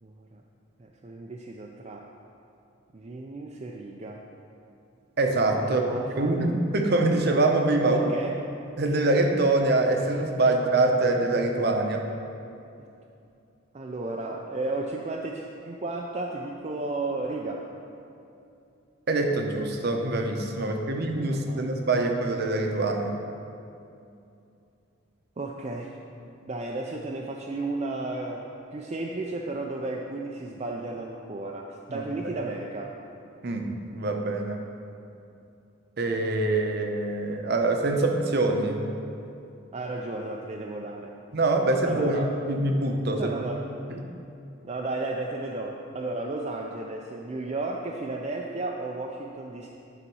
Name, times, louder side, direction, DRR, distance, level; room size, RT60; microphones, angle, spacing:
voice 1, 0.0-0.4 0.8-2.1 2.9-4.2 5.6-6.5 7.8-8.4 13.7-17.6 20.6-21.7 25.4-25.9 26.5-28.4 28.7-32.9 39.7-41.1 41.8-42.3 43.2-43.7 44.6-49.7, right 2 dB, 30° right, -1 dB, 0.4 m, -33 dB
voice 2, 5.2-5.8 6.2-8.0 8.8-12.1 19.1-23.1 31.9-32.0 33.4-34.6 36.0-38.8 41.3-43.3 43.9-44.1, right 2 dB, 50° right, 3 dB, 0.7 m, -24 dB
9.9 x 4.1 x 6.2 m, 2.6 s
head